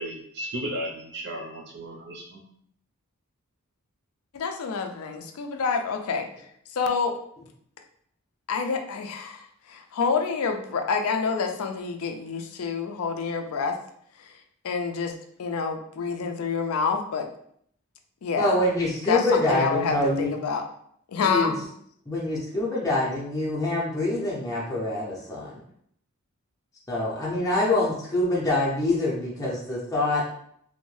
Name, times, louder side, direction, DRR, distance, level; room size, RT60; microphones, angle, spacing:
voice 1, 0.0-2.4, equal, 50° right, 0 dB, 0.5 m, -34 dB
voice 2, 4.3-7.1 8.5-13.8 14.2-14.4 14.6-15.1 15.4-17.3 18.2-18.5 19.1-20.6 21.1-21.5, left 5 dB, 75° left, 5 dB, 0.4 m, -28 dB
voice 3, 18.4-20.3 21.2-21.5 22.1-25.6 26.9-30.2, left 2 dB, 15° left, -6 dB, 0.5 m, -25 dB
2.6 x 2.1 x 3.1 m, 0.67 s
head